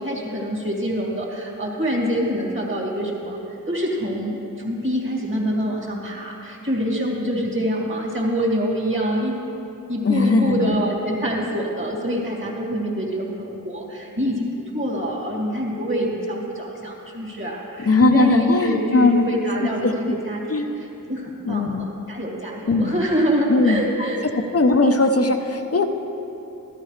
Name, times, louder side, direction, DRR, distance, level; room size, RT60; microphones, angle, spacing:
voice 1, 0.0-9.3 9.9-24.2, equal, 35° right, -3 dB, 2.5 m, -25 dB
voice 2, 10.0-10.8 17.8-19.3 19.8-19.9 20.5-20.7 21.5-21.8 22.7-23.0 23.5-23.8 24.5-25.8, left 3 dB, 45° left, 5 dB, 0.8 m, -19 dB
13.5 x 12.5 x 3.3 m, 2.9 s
wide cardioid pair, 65°, 34 cm